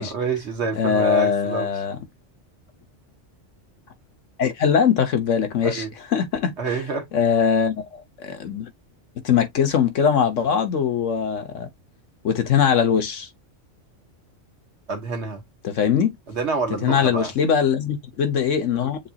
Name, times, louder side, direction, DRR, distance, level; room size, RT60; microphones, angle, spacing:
voice 1, 0.0-1.7 5.6-5.9 6.6-7.1 14.9-15.4 16.3-17.3, right 4 dB, 65° right, 1.5 m, -27 dB
voice 2, 0.8-2.0 4.4-5.8 6.1-6.5 7.1-8.7 9.2-11.7 12.2-13.3 15.6-16.2 16.8-19.0, left 7 dB, 90° left, 1.4 m, -21 dB
7.3 x 2.5 x 2.8 m
omnidirectional pair, 1.2 m